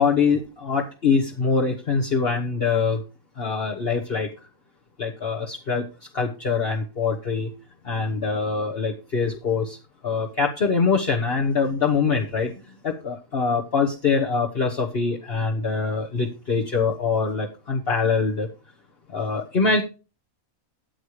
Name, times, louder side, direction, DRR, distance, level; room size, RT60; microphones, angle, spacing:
voice 1, 0.0-3.0 3.4-4.3 5.0-5.8 6.1-7.5 7.9-9.8 10.0-12.5 12.8-18.5 19.1-19.8, left 5 dB, 45° left, 0 dB, 1.3 m, -23 dB
13.5 x 8.5 x 3.2 m, 0.31 s
omnidirectional pair, 1.5 m